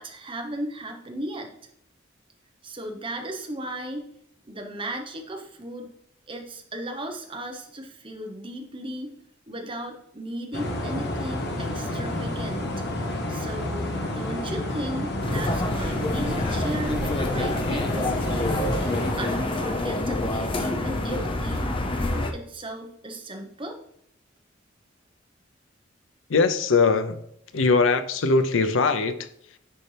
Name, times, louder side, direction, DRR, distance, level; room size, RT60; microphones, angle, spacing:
voice 1, 0.0-1.5 2.6-4.0 4.4-5.9 6.3-9.1 9.5-23.8, right 1 dB, 25° right, 3 dB, 1.0 m, -36 dB
sound 1, 10.5-19.1, left 1 dB, 55° left, 1.1 m, -30 dB
sound 2, 15.2-22.3, left 1 dB, 25° left, 0.7 m, -27 dB
voice 2, 26.3-27.2 27.5-29.6, left 4 dB, 85° left, 10 dB, 0.7 m, -21 dB
10.0 x 4.2 x 3.4 m, 0.73 s
head